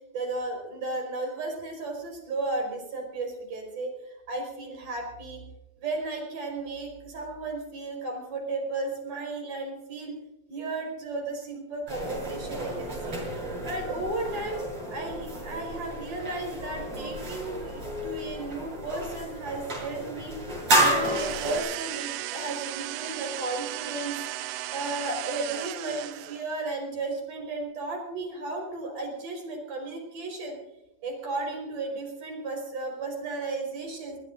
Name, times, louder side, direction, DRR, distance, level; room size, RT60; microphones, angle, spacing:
voice 1, 0.1-5.5 5.8-10.2 10.5-13.2 13.6-14.6 14.9-20.4 20.7-24.2 24.7-30.6 31.0-34.2, right 2 dB, 60° right, 1 dB, 6.3 m, -34 dB
sound 1, 11.9-21.6, right 1 dB, 40° right, 8.2 m, -31 dB
sound 2, 20.9-26.6, right 15 dB, 80° right, 2.3 m, -35 dB
22.5 x 20.5 x 2.6 m, 0.93 s
omnidirectional pair, 4.3 m